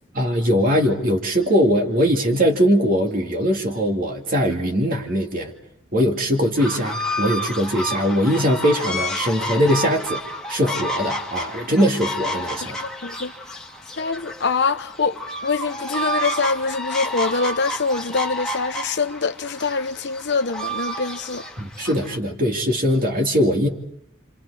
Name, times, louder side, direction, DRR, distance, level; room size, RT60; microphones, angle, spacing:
voice 1, 0.1-5.5 5.9-10.2 10.5-12.8 21.6-23.7, equal, 45° right, 2.5 m, -21 dB
sound 1, 6.6-22.2, equal, 5° left, 2.5 m, -30 dB
voice 2, 13.0-13.3 14.0-21.5, left 4 dB, 55° left, 0.9 m, -24 dB
29.5 x 27.0 x 5.0 m
head